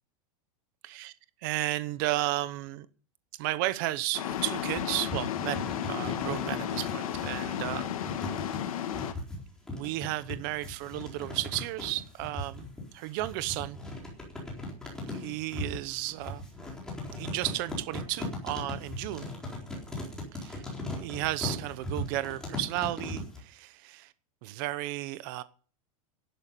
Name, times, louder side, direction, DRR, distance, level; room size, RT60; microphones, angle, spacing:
voice 1, 1.4-2.9 3.4-7.9 9.7-12.7 12.9-13.8 15.1-16.4 17.1-19.3 20.3-20.7 21.0-24.1 24.4-25.4, right 17 dB, 35° right, 0.9 m, -33 dB
sound 1, 4.1-9.1, left 10 dB, 80° left, 2.4 m, -33 dB
sound 2, 4.3-23.4, left 2 dB, 5° left, 4.0 m, -39 dB
12.0 x 11.5 x 6.8 m
supercardioid pair, 180°, 18 cm